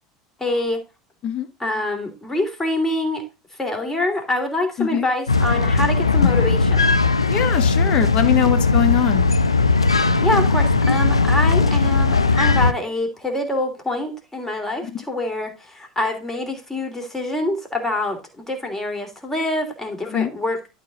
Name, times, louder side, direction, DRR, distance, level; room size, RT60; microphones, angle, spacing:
voice 1, 0.4-0.8 1.6-3.2 3.6-7.0 10.2-20.6, left 2 dB, 15° left, 4 dB, 2.5 m, -25 dB
sound 1, 5.3-12.7, left 3 dB, 85° left, 0.5 m, -18 dB
voice 2, 7.3-9.3 14.8-15.0 20.1-20.3, left 9 dB, 40° left, 9 dB, 1.3 m, -22 dB
11.5 x 4.2 x 3.9 m, 0.29 s
figure-of-eight pair, 75°, 3 cm